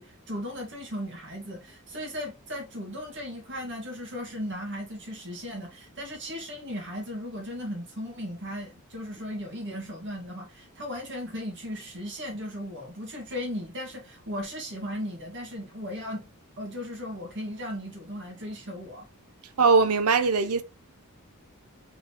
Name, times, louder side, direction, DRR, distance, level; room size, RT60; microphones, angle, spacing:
voice 1, 0.0-16.3 16.6-19.1, equal, 55° right, 1.7 m, -36 dB
voice 2, 19.6-20.6, right 4 dB, 85° right, 0.7 m, -21 dB
4.0 x 3.9 x 2.9 m
head